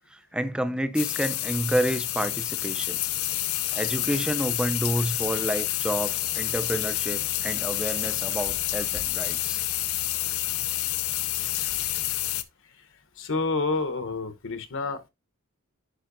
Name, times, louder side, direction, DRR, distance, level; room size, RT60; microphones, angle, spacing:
voice 1, 0.1-3.0 3.7-9.6, right 1 dB, 5° right, 0.5 m, -29 dB
sound 1, 1.0-12.4, left 15 dB, 80° left, 0.6 m, -29 dB
voice 2, 13.2-15.1, left 3 dB, 60° left, 1.0 m, -28 dB
10.0 x 5.6 x 2.6 m
head